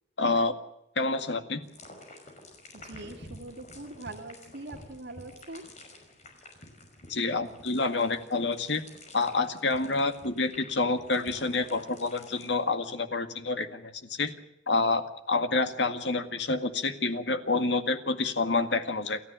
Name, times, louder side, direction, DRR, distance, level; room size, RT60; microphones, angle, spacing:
voice 1, 0.2-0.5 1.0-1.6 7.1-8.8 9.1-14.3 14.7-19.2, left 3 dB, 70° left, 9 dB, 1.9 m, -28 dB
sound 1, 1.6-12.5, left 1 dB, 40° left, 5.7 m, -50 dB
voice 2, 2.7-5.7 9.9-10.0, right 2 dB, 65° right, 0 dB, 2.3 m, -43 dB
29.0 x 13.5 x 8.9 m, 0.84 s
head